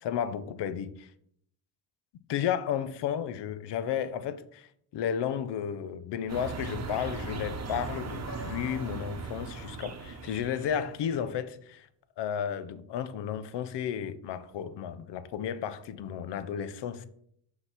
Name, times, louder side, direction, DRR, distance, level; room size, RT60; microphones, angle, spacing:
voice 1, 0.0-1.1 2.3-11.9 12.2-17.1, left 9 dB, 80° left, 0.7 m, -33 dB
sound 1, 6.3-11.2, right 5 dB, 40° right, 0.9 m, -38 dB
Piano, 8.3-10.2, left 2 dB, 55° left, 3.0 m, -49 dB
5.5 x 3.9 x 5.7 m
cardioid pair, 85°, 41 cm